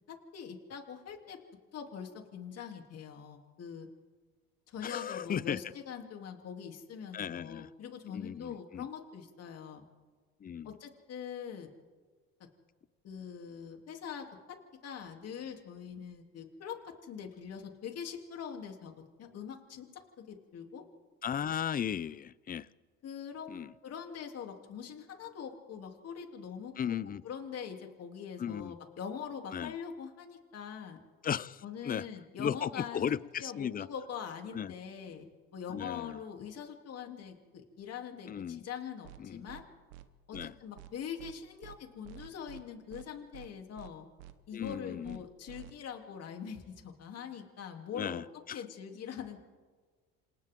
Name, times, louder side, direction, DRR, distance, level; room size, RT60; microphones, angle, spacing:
voice 1, 0.1-1.4 1.7-3.9 4.7-9.8 10.6-11.7 13.0-14.6 14.8-20.8 23.0-23.5 23.8-31.0 31.6-35.3 35.5-39.7 40.3-44.1 44.5-48.2 48.5-49.4, left 7 dB, 50° left, 3 dB, 3.2 m, -43 dB
voice 2, 4.8-5.6 7.1-7.7 8.1-8.9 10.4-10.7 21.2-22.7 23.5-23.7 26.8-27.2 28.4-28.7 29.5-29.7 31.2-32.0 32.4-33.9 34.5-34.7 35.7-36.2 38.3-38.6 39.2-39.4 40.3-40.5 44.5-45.2 48.0-48.6, left 8 dB, 25° left, 19 dB, 0.6 m, -36 dB
sound 1, 39.0-39.2 39.5-39.6 39.9-40.0 40.3-40.5 40.8-40.9 41.2-41.3 41.6-41.8 42.0-42.6 42.9-43.0 43.3-43.5 43.8-43.9 44.2-44.3 44.6-44.8 45.0-45.2 45.5-45.7, right 15 dB, 85° right, 1.2 m, -50 dB
27.5 x 27.5 x 3.8 m, 1.4 s
supercardioid pair, 100°, 33 cm